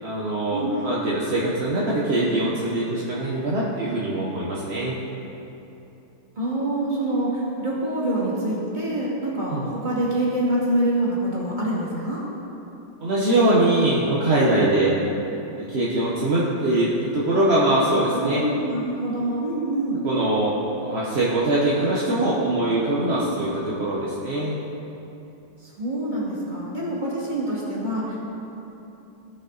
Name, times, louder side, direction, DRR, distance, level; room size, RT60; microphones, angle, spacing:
voice 1, 0.0-5.0 9.5-9.6 13.0-14.9 15.6-18.4 20.0-24.6, right 1 dB, 40° right, -6 dB, 1.0 m, -22 dB
voice 2, 6.4-12.2 14.5-14.6 18.1-20.0 23.0-23.2 25.6-28.2, right 1 dB, 20° right, -6 dB, 2.2 m, -26 dB
16.5 x 5.7 x 4.0 m, 3.0 s
omnidirectional pair, 2.3 m